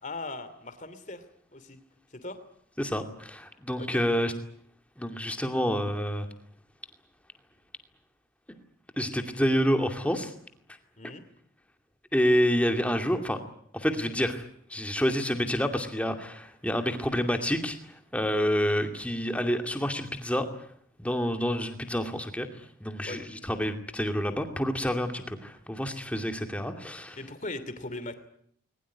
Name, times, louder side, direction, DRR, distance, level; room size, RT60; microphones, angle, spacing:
voice 1, 0.0-1.2 1.5-1.8 2.2-2.4 3.8-4.0 11.0-11.2 23.0-23.2 27.2-28.2, left 2 dB, 40° left, 12 dB, 2.8 m, -38 dB
voice 2, 2.8-4.3 5.0-6.3 9.0-10.3 12.1-13.4 13.7-20.5 21.0-27.2, equal, 5° left, 5 dB, 2.4 m, -28 dB
21.5 x 20.5 x 9.6 m, 0.64 s
head